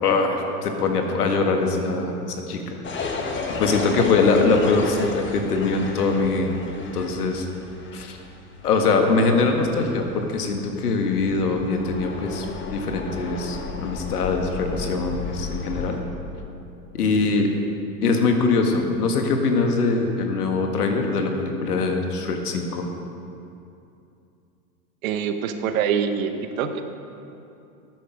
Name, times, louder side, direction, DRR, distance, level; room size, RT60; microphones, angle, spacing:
voice 1, 0.0-3.2 3.6-7.4 7.9-8.2 8.6-12.4 12.7-16.0 16.9-17.5 18.0-22.9, left 3 dB, 80° left, 4 dB, 1.7 m, -22 dB
sound 1, 2.8-16.0, left 4 dB, 25° left, 1.4 m, -33 dB
voice 2, 25.0-26.8, right 7 dB, 65° right, 8 dB, 1.1 m, -25 dB
12.0 x 9.4 x 5.2 m, 2.7 s
hypercardioid pair, 105°, 45 cm